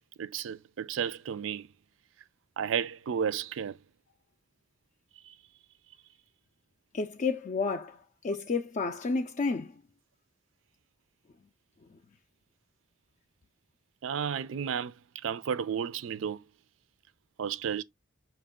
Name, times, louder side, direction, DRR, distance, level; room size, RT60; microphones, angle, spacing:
voice 1, 0.2-1.7 2.6-3.8 5.2-5.3 14.0-16.4 17.4-17.8, right 7 dB, 75° right, 0.4 m, -33 dB
voice 2, 6.9-8.0 8.2-9.7, left 4 dB, 40° left, 0.4 m, -30 dB
5.8 x 2.2 x 3.6 m
head